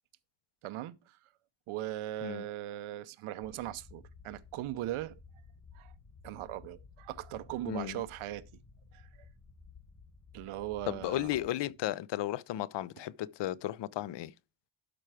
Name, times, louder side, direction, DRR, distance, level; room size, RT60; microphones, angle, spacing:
voice 1, 0.6-1.2 1.7-5.2 5.7-5.9 6.2-8.4 8.9-9.2 10.3-11.3, right 14 dB, 85° right, 0.9 m, -39 dB
sound 1, 3.4-11.5, left 4 dB, 35° left, 1.9 m, -55 dB
voice 2, 7.7-8.0 10.9-14.3, left 14 dB, 60° left, 0.6 m, -34 dB
12.0 x 4.6 x 4.9 m
cardioid pair, 120°, 49 cm